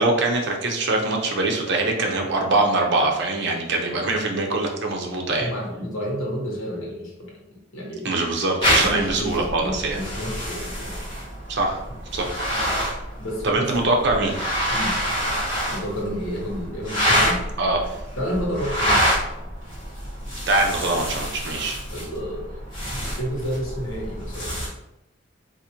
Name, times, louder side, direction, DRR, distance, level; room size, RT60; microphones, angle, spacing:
voice 1, 0.0-5.5 8.0-10.0 11.5-11.8 12.1-12.3 13.4-14.3 17.6-18.0 20.5-21.8, right 2 dB, 55° right, 1 dB, 0.6 m, -23 dB
voice 2, 5.4-7.4 7.7-8.1 8.8-11.0 13.2-13.9 14.7-15.0 15.7-17.6 18.2-19.1 21.9-22.5 23.0-24.6, equal, 80° left, -2 dB, 1.1 m, -30 dB
sound 1, 8.6-24.7, equal, 25° left, 1.5 m, -27 dB
4.0 x 2.4 x 2.9 m, 0.90 s
head